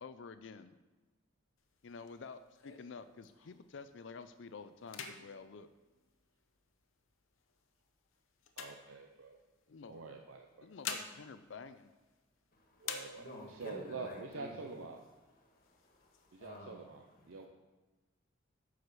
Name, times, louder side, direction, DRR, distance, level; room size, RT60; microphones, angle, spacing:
voice 1, 0.0-0.7 1.8-5.7 9.7-10.0 10.6-11.9, left 5 dB, 65° left, 11 dB, 0.4 m, -50 dB
sound 1, 1.6-3.8 4.2-4.5 4.8-6.7 7.4-9.5 10.4-12.4 12.8-13.7 14.1-14.2 14.5-15.1 15.6-16.5, left 6 dB, 90° left, 0.9 m, -48 dB
voice 2, 8.6-9.4 9.9-10.7 12.8-15.0 16.3-17.5, right 4 dB, 90° right, 2 dB, 0.7 m, -46 dB
voice 3, 12.5-14.8 15.3-17.5, left 1 dB, 45° left, 0 dB, 1.6 m, -52 dB
9.5 x 4.9 x 6.2 m, 1.2 s
head